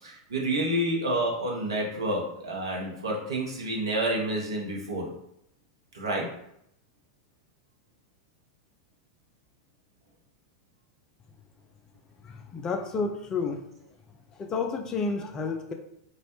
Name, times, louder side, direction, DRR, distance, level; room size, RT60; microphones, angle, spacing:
voice 1, 0.0-5.1 5.9-6.4, right 1 dB, 75° right, -2 dB, 0.7 m, -29 dB
voice 2, 12.2-13.6 14.3-15.7, left 4 dB, 25° left, 4 dB, 0.3 m, -30 dB
2.3 x 2.0 x 2.9 m, 0.75 s
figure-of-eight pair, 90°, 3 cm